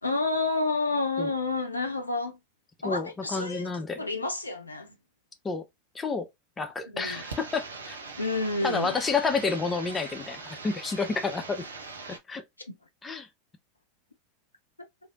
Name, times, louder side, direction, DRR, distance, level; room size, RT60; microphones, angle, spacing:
voice 1, 0.0-2.4 2.8-3.7 4.0-5.0 6.9-7.2 8.2-9.0 12.7-12.8 14.8-14.9, left 3 dB, 85° left, 0.5 m, -29 dB
voice 2, 2.8-4.0 5.4-5.6 5.9-6.3 6.6-8.0 8.6-11.6 12.1-12.4 13.0-13.3, left 4 dB, 20° left, 0.7 m, -30 dB
sound 1, 7.0-12.2, right 4 dB, 75° right, 0.7 m, -41 dB
3.4 x 2.7 x 2.4 m
figure-of-eight pair, 85°, 0 cm